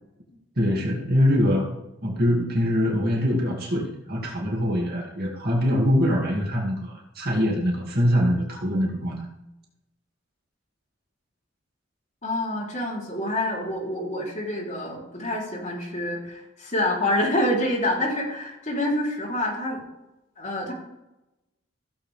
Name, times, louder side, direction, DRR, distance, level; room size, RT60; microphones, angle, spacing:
voice 1, 0.6-1.7 2.0-9.2, equal, 50° right, -2 dB, 2.3 m, -23 dB
voice 2, 12.2-19.8 20.4-20.7, left 1 dB, 35° left, -3 dB, 3.5 m, -27 dB
15.5 x 7.7 x 3.5 m, 0.92 s
head